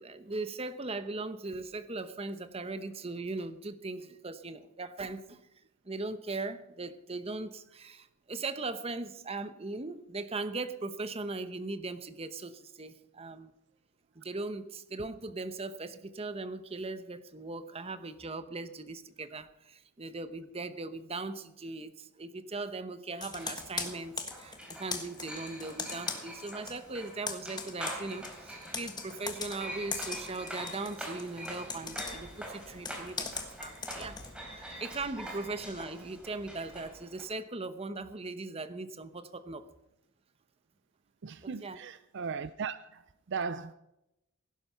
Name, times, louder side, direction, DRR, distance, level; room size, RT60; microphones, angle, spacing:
voice 1, 0.0-5.4 5.8-13.5 14.2-34.2 34.5-39.7 41.4-41.8, right 3 dB, 25° right, 0.9 m, -39 dB
Computer keyboard, 23.2-26.8 27.1-34.3, left 5 dB, 20° left, 1.5 m, -40 dB
sound 1, 23.4-37.2, equal, 5° right, 3.4 m, -44 dB
voice 2, 41.2-43.0 43.3-43.7, right 5 dB, 55° right, 0.4 m, -37 dB
17.5 x 10.5 x 5.7 m
head